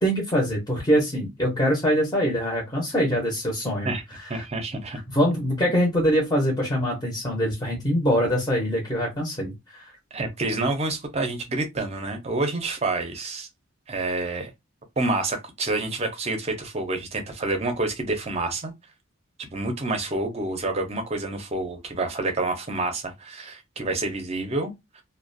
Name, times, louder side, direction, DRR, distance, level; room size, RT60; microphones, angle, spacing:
voice 1, 0.0-3.9 4.2-4.4 5.1-9.9, equal, 15° left, 0.6 m, -24 dB
voice 2, 4.3-5.0 10.1-13.5 13.9-14.5 15.0-18.7 19.4-25.0, right 2 dB, 30° right, 0.5 m, -28 dB
2.3 x 2.1 x 2.5 m
head